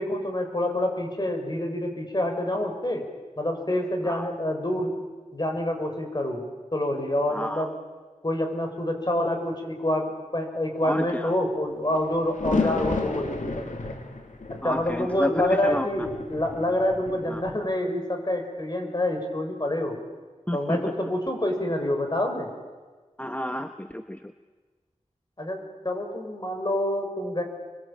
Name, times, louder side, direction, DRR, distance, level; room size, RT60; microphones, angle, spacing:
voice 1, 0.0-3.0 3.4-5.0 5.3-6.4 6.7-7.7 8.2-13.7 14.6-20.0 20.5-22.5 25.4-27.4, left 1 dB, 35° left, 4 dB, 6.7 m, -27 dB
voice 2, 7.3-7.7 10.8-11.3 12.6-12.7 14.6-15.9 17.3-17.4 20.5-20.8 23.2-24.2, equal, 10° left, 7 dB, 1.2 m, -31 dB
sound 1, 11.9-17.5, left 3 dB, 85° left, 3.0 m, -32 dB
28.0 x 23.0 x 9.0 m, 1.4 s
wide cardioid pair, 50°, 13 cm